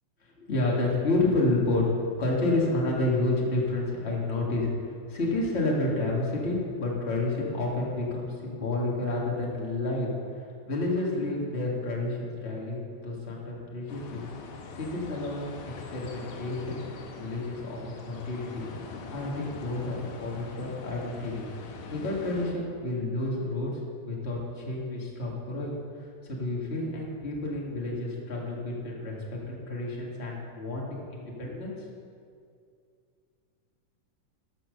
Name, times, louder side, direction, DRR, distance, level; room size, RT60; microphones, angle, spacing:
voice 1, 0.4-14.2 14.7-15.4 15.8-16.8 17.1-17.8 18.0-18.7 19.1-21.5 21.9-23.7 24.0-25.8 26.2-29.2 29.5-31.7, left 2 dB, 25° left, -3 dB, 1.4 m, -30 dB
sound 1, 13.9-22.5, left 4 dB, 75° left, 2.5 m, -43 dB
13.5 x 5.9 x 6.5 m, 2.3 s
omnidirectional pair, 3.8 m